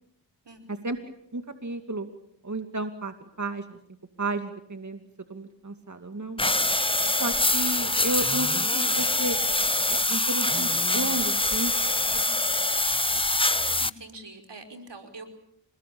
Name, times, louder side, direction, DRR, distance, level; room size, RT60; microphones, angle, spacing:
voice 1, 0.4-0.9 6.9-7.3 12.1-12.6 13.8-15.3, right 2 dB, 70° right, 6 dB, 5.1 m, -46 dB
voice 2, 1.3-2.1 2.4-3.8 4.2-5.0 5.3-6.4 7.2-9.4 10.1-11.7, right 2 dB, 40° right, 7 dB, 2.5 m, -32 dB
sound 1, 6.4-13.9, left 2 dB, 10° left, 1.1 m, -24 dB
29.0 x 19.5 x 8.6 m, 0.75 s
cardioid pair, 40°, 43 cm